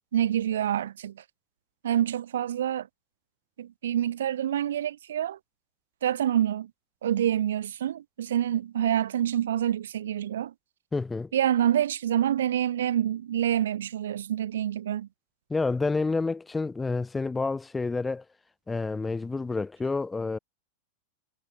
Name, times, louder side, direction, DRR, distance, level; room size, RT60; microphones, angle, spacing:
voice 1, 0.1-1.1 1.8-2.9 3.6-5.4 6.0-6.7 7.0-10.5 11.3-15.1, right 10 dB, 60° right, 0.5 m, -27 dB
voice 2, 10.9-11.3 15.5-18.2 18.7-20.4, left 3 dB, 10° left, 0.5 m, -29 dB
figure-of-eight pair, 90°, 0 cm